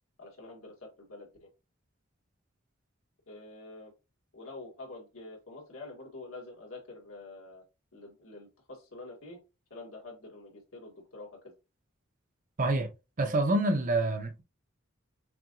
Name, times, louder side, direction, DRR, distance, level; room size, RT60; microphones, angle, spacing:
voice 1, 0.2-1.5 3.3-3.9 4.3-7.6 7.9-9.4 9.7-11.5, left 2 dB, 85° left, 2.0 m, -47 dB
voice 2, 12.6-12.9 13.2-14.4, right 2 dB, 40° right, 0.8 m, -27 dB
5.8 x 2.6 x 2.4 m
head